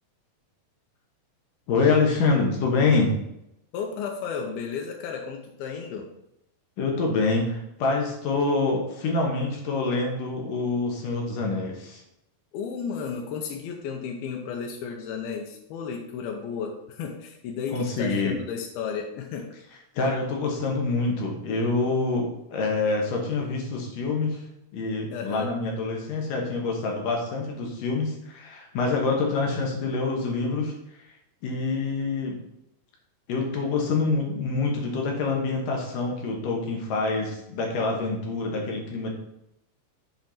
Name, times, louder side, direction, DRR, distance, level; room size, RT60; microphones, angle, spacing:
voice 1, 1.7-3.1 6.8-12.0 17.7-18.3 19.9-24.5 24.7-30.7 31.4-32.4 33.3-39.1, left 3 dB, 65° left, 0 dB, 2.8 m, -26 dB
voice 2, 3.7-6.1 12.5-19.5 25.1-25.5, left 6 dB, 90° left, 2 dB, 2.7 m, -33 dB
8.0 x 4.5 x 5.7 m, 0.82 s
omnidirectional pair, 4.3 m